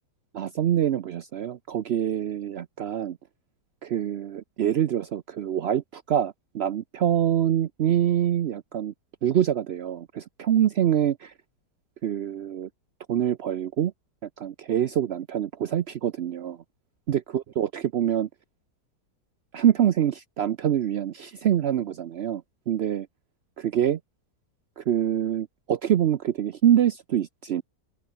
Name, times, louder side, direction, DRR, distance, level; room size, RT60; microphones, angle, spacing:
voice 1, 0.3-3.2 3.8-8.9 9.2-11.3 12.0-12.7 13.1-13.9 14.4-16.6 17.1-18.3 19.5-23.1 23.6-24.0 24.8-27.6, right 10 dB, 80° right, 0.5 m, -25 dB
open air
omnidirectional pair, 1.9 m